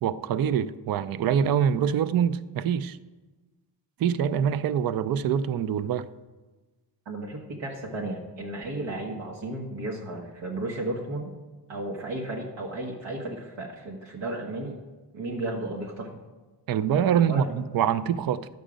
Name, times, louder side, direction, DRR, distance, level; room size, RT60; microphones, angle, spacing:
voice 1, 0.0-3.0 4.0-6.1 16.7-18.5, right 8 dB, 55° right, 0.5 m, -25 dB
voice 2, 7.0-11.3 11.7-14.8 15.1-16.1 17.1-17.5, right 2 dB, 85° right, 1.6 m, -34 dB
11.0 x 7.8 x 5.1 m
cardioid pair, 130°, 43 cm